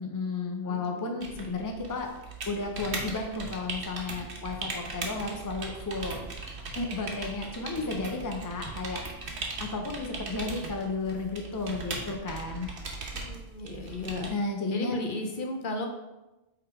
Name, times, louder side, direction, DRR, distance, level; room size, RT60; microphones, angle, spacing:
voice 1, 0.0-2.1 2.5-6.2 6.7-9.0 9.6-12.7 14.3-15.0, left 3 dB, 25° left, 3 dB, 0.5 m, -33 dB
voice 2, 0.7-1.1 7.7-8.1 13.2-14.3 14.7-15.9, left 2 dB, 55° left, 3 dB, 0.8 m, -35 dB
sound 1, 1.2-14.3, right 3 dB, 85° right, 1.2 m, -39 dB
5.6 x 3.8 x 4.4 m, 1.0 s
omnidirectional pair, 1.1 m